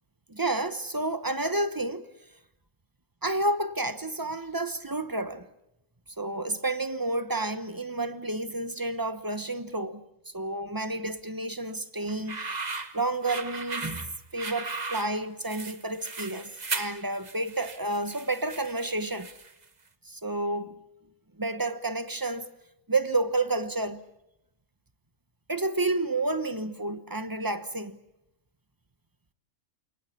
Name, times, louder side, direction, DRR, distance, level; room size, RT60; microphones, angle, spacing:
voice 1, 0.3-2.1 3.2-5.5 6.2-12.7 12.9-19.3 20.0-20.8 21.4-22.5 22.9-24.0 25.5-28.0, right 2 dB, 15° right, 1.1 m, -30 dB
sound 1, 12.1-19.6, right 3 dB, 35° right, 1.4 m, -37 dB
28.5 x 18.5 x 8.4 m
omnidirectional pair, 1.3 m